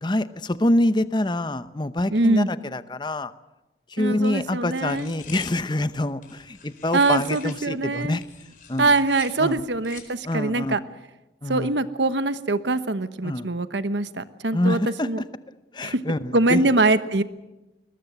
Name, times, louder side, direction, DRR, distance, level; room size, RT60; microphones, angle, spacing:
voice 1, 0.0-3.3 3.9-8.2 8.7-8.9 9.4-9.6 10.2-10.8 11.4-11.7 13.2-13.5 14.5-15.1 15.7-16.6, left 1 dB, 25° left, 13 dB, 0.8 m, -25 dB
voice 2, 2.1-2.5 4.0-5.1 6.9-8.2 8.8-10.8 11.5-14.8 15.0-15.2 15.8-16.0 16.3-17.2, right 2 dB, 80° right, 12 dB, 1.1 m, -23 dB
sound 1, 4.7-7.7 8.1-10.2, left 7 dB, 45° left, 4.3 m, -45 dB
21.0 x 20.5 x 8.0 m, 1.0 s
head